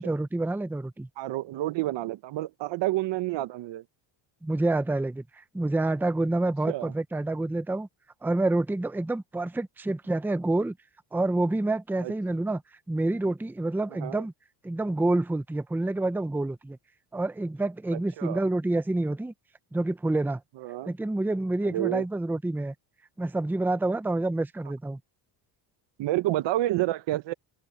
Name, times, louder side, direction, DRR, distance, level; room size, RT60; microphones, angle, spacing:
voice 1, 0.0-1.1 4.4-7.9 8.2-10.8 11.1-12.6 12.9-14.3 14.6-16.8 17.1-19.3 19.7-20.4 20.9-22.7 23.2-25.0, right 2 dB, 5° right, 0.7 m, -28 dB
voice 2, 1.2-3.8 6.7-6.9 12.0-12.1 13.9-14.2 17.9-18.4 20.6-20.9 21.6-22.0 26.0-27.3, right 16 dB, 65° right, 1.2 m, -29 dB
open air
cardioid pair, 115°, 47 cm